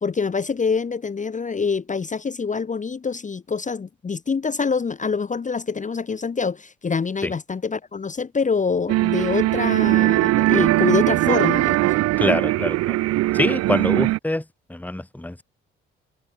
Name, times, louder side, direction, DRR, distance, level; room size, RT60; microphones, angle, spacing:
voice 1, 0.0-11.9, left 5 dB, 25° left, 0.9 m, -25 dB
sound 1, 8.9-14.2, right 18 dB, 55° right, 0.5 m, -20 dB
voice 2, 12.2-13.0 13.3-14.4 14.7-15.4, left 1 dB, 5° left, 1.5 m, -25 dB
hypercardioid pair, 50°, 30 cm